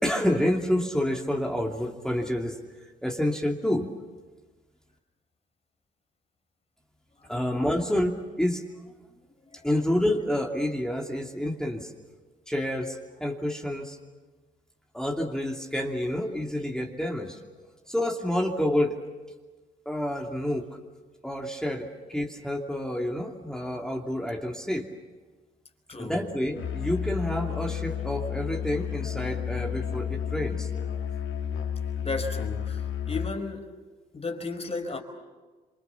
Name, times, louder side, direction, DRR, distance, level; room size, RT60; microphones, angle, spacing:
voice 1, 0.0-2.6 3.0-3.9 7.3-8.6 9.6-11.9 12.5-14.0 14.9-17.4 17.9-19.0 19.8-20.7 21.2-24.9 26.0-30.7, left 1 dB, 5° left, 1 dB, 2.8 m, -28 dB
voice 2, 25.9-26.2 32.0-33.7 34.1-35.0, left 3 dB, 30° left, 6 dB, 4.7 m, -34 dB
Musical instrument, 26.5-33.5, left 8 dB, 80° left, 2.0 m, -31 dB
27.5 x 24.0 x 7.3 m, 1.3 s
supercardioid pair, 75°, 21 cm